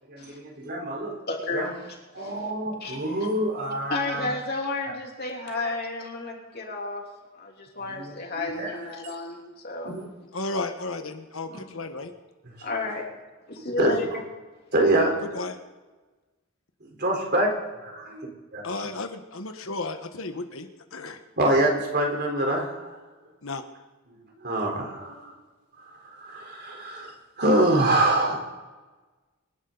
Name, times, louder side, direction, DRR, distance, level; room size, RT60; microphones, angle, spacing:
voice 1, 0.1-1.1 1.5-1.7 2.1-4.3 5.6-5.7 7.8-8.1 8.5-8.8 9.8-10.1 11.5-11.6 12.5-12.8 13.8-13.9 14.7-15.1 17.0-17.5 17.8-18.6 21.4-22.9 24.4-25.3 26.2-27.1 27.4-28.3, right 1 dB, 50° right, 1 dB, 4.0 m, -25 dB
voice 2, 1.3-1.9 2.1-2.5 2.8-3.0 3.9-7.0 7.3-9.9 12.6-13.1 13.5-14.2, left 3 dB, 45° left, 0 dB, 3.3 m, -32 dB
voice 3, 10.3-12.1 15.3-15.5 18.6-20.7 20.9-21.2 23.4-23.6, left 3 dB, 70° left, 7 dB, 1.3 m, -33 dB
26.5 x 11.5 x 4.0 m, 1.2 s
head